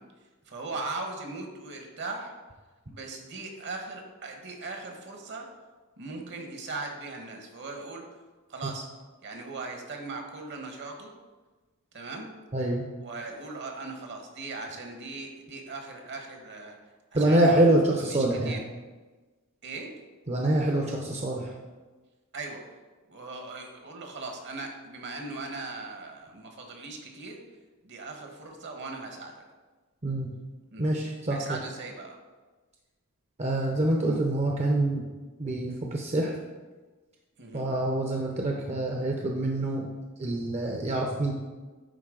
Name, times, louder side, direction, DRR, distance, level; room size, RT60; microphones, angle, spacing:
voice 1, 0.5-2.4 2.9-5.5 6.0-8.1 8.5-8.9 9.2-11.1 11.9-12.3 13.0-16.8 17.2-17.7 18.1-18.6 19.6-20.0 22.3-22.7 23.1-27.5 27.8-29.4 30.7-30.9 31.3-32.2 37.4-37.7, right 3 dB, 55° right, 3 dB, 1.2 m, -39 dB
voice 2, 12.5-12.9 17.1-18.6 20.3-21.5 30.0-30.3 30.8-31.4 33.4-35.1 35.4-36.3 37.5-39.9 40.2-41.3, right 1 dB, 30° right, 0 dB, 0.6 m, -25 dB
10.0 x 4.0 x 3.8 m, 1.3 s
head